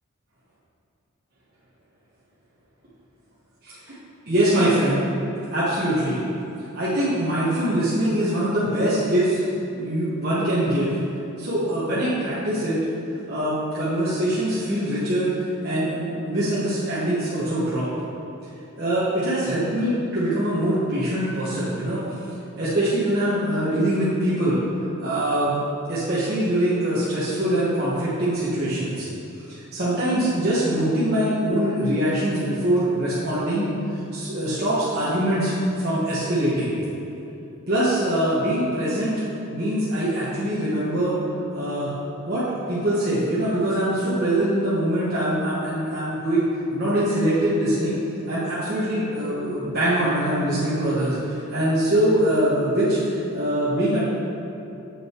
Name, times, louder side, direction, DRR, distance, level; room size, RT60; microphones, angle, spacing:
voice 1, 3.6-4.0 4.3-5.0 5.5-6.2 6.7-9.4 9.7-10.9 11.4-12.8 13.3-17.9 18.8-24.6 25.0-25.6 25.9-29.1 29.4-33.7 34.1-35.5 35.8-36.7 37.7-39.1 39.5-41.2 41.5-41.9 42.3-47.9 48.3-54.0, right 1 dB, 45° right, -11 dB, 1.4 m, -23 dB
7.8 x 6.4 x 4.6 m, 2.8 s
head